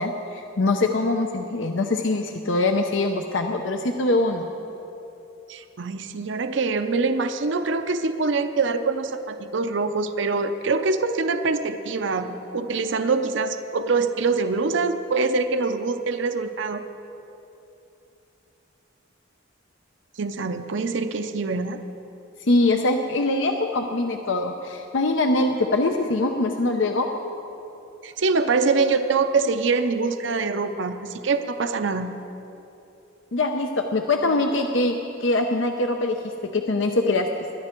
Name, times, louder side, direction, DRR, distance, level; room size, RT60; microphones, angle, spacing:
voice 1, 0.0-4.5 22.4-27.1 33.3-36.2 36.5-37.3, left 2 dB, 75° left, 4 dB, 0.7 m, -23 dB
voice 2, 5.5-16.8 20.2-21.8 28.0-32.1, right 4 dB, 70° right, 8 dB, 0.6 m, -24 dB
21.5 x 11.0 x 4.5 m, 2.9 s
head